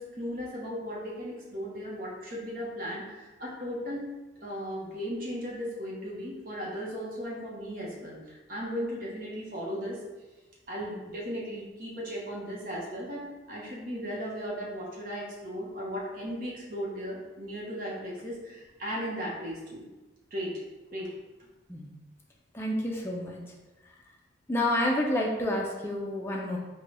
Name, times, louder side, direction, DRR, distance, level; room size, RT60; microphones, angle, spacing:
voice 1, 0.0-4.0 4.4-10.0 10.7-19.8 20.3-20.6 20.9-21.1, equal, 45° right, -4 dB, 0.8 m, -36 dB
voice 2, 22.5-23.5 24.5-26.6, left 1 dB, 10° left, -2 dB, 0.4 m, -29 dB
3.8 x 2.2 x 3.2 m, 1.1 s
head